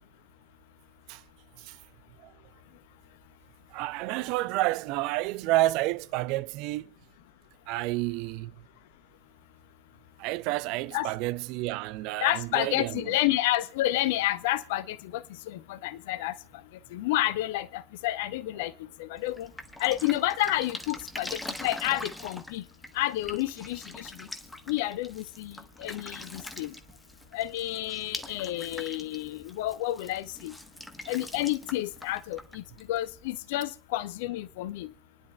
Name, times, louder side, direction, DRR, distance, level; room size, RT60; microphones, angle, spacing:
voice 1, 3.7-6.9 7.7-8.5 10.2-13.2, right 17 dB, 45° right, 0.5 m, -30 dB
voice 2, 12.2-16.4 16.9-18.7 19.0-19.5 19.8-22.6 22.9-24.3 24.7-26.7 27.3-30.5 31.1-34.9, left 15 dB, 50° left, 0.6 m, -30 dB
Drip, 19.2-33.2, left 1 dB, 5° left, 1.1 m, -43 dB
28.0 x 10.5 x 2.3 m
figure-of-eight pair, 90°, 0 cm